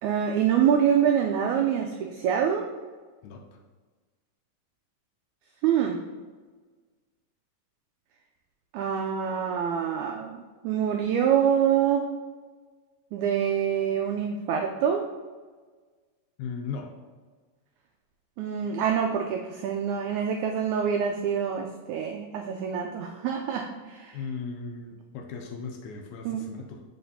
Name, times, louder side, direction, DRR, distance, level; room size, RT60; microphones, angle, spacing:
voice 1, 0.0-2.7 5.6-6.0 8.7-12.0 13.1-15.1 18.4-24.2 26.2-26.4, right 8 dB, 90° right, 3 dB, 1.6 m, -26 dB
voice 2, 16.4-16.9 24.1-26.8, left 5 dB, 80° left, 3 dB, 1.7 m, -37 dB
7.6 x 5.0 x 2.7 m, 1.4 s
omnidirectional pair, 3.9 m